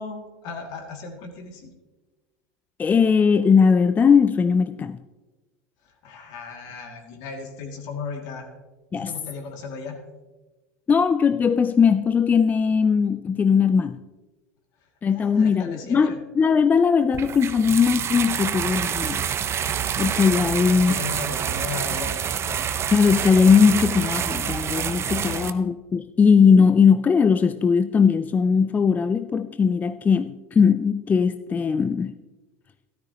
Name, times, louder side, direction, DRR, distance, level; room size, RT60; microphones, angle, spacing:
voice 1, 0.0-1.7 5.8-8.5 9.0-10.0 15.1-16.2 20.6-22.8 25.2-25.4, left 4 dB, 60° left, 3 dB, 2.5 m, -36 dB
voice 2, 2.8-5.0 8.9-9.1 10.9-14.0 15.0-19.3 20.0-21.0 22.9-32.1, left 6 dB, 20° left, 12 dB, 0.4 m, -19 dB
sound 1, 17.1-25.5, right 8 dB, 35° right, 0.7 m, -27 dB
13.0 x 12.5 x 3.0 m, 1.2 s
hypercardioid pair, 100°, 8 cm